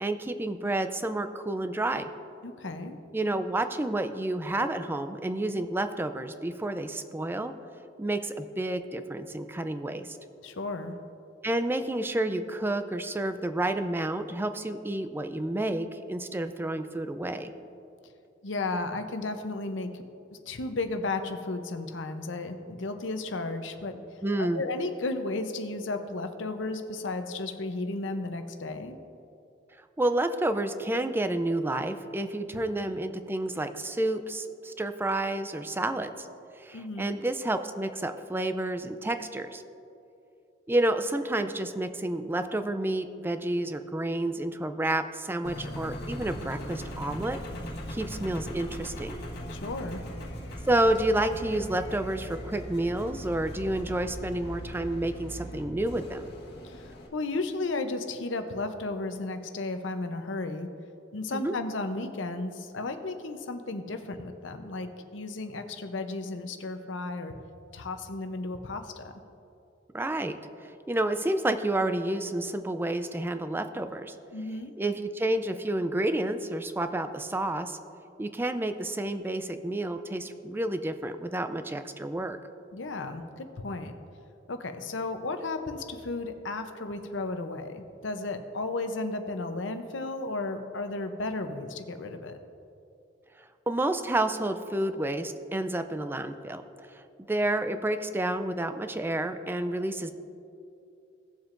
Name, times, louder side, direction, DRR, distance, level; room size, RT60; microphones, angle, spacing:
voice 1, 0.0-2.1 3.1-7.5 8.0-10.2 11.4-17.5 24.2-24.6 30.0-36.3 36.6-39.6 40.7-47.4 47.9-49.2 50.7-56.3 61.3-61.5 69.9-74.1 74.8-77.8 78.2-82.4 93.7-100.1, right 1 dB, 10° right, 9 dB, 0.4 m, -30 dB
voice 2, 2.4-3.0 10.4-10.9 18.4-20.0 20.5-24.0 24.4-29.0 36.7-37.2 49.5-50.0 56.6-56.8 57.1-60.7 61.1-67.3 67.7-69.1 74.3-74.7 82.7-83.9 84.5-92.4, left 2 dB, 75° left, 7 dB, 0.7 m, -34 dB
Engine, 45.4-57.1, equal, 55° left, 1.4 m, -39 dB
17.5 x 7.2 x 2.6 m, 2.7 s
head